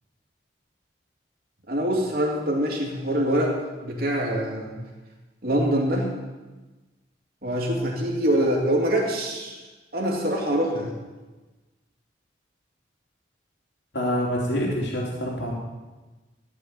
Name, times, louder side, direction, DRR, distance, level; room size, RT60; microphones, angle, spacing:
voice 1, 1.7-4.8 5.4-6.1 7.4-9.6 9.9-10.9, equal, 55° right, -1 dB, 3.1 m, -24 dB
voice 2, 13.9-15.6, equal, 80° left, -3 dB, 3.3 m, -26 dB
14.0 x 6.9 x 9.5 m, 1.2 s
head